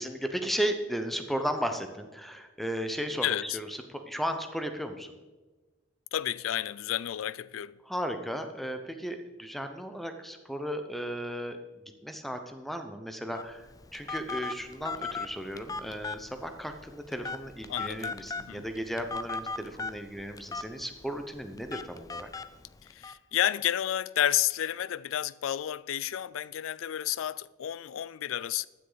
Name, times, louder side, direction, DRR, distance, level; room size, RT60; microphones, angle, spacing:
voice 1, 0.0-5.1 7.9-11.6 12.0-22.3, equal, ahead, 0.8 m, -35 dB
voice 2, 3.2-3.6 6.1-7.8 17.7-18.7 22.8-28.7, left 11 dB, 80° left, 0.4 m, -31 dB
Telephone, 13.3-23.1, left 4 dB, 20° left, 0.4 m, -39 dB
14.5 x 9.8 x 4.0 m
head